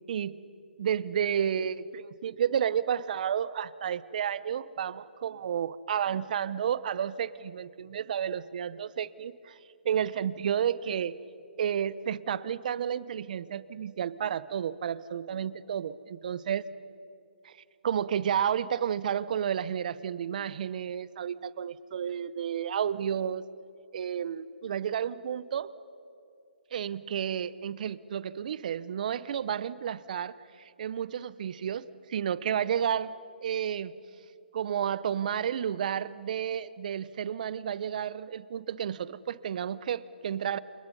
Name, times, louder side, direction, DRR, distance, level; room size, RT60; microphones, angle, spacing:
voice 1, 0.1-0.4 0.8-9.6 9.8-11.2 11.6-16.6 17.4-17.5 17.8-23.4 23.9-25.7 26.7-30.4 30.8-33.1 33.4-33.9 34.5-40.6, right 8 dB, 50° right, 18 dB, 0.9 m, -31 dB
29.0 x 29.0 x 5.5 m, 2.6 s
hypercardioid pair, 145°, 6 cm